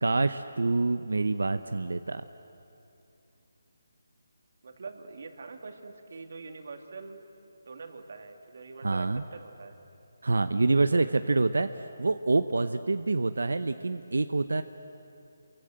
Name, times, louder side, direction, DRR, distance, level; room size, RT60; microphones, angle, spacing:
voice 1, 0.0-2.2 8.8-9.2 10.2-11.7 12.0-14.6, right 3 dB, 90° right, 10 dB, 0.8 m, -26 dB
voice 2, 4.6-7.3 7.7-9.8 10.9-11.4, right 4 dB, 50° right, 5 dB, 2.4 m, -44 dB
29.0 x 23.5 x 7.9 m, 2.8 s
hypercardioid pair, 170°, 0 cm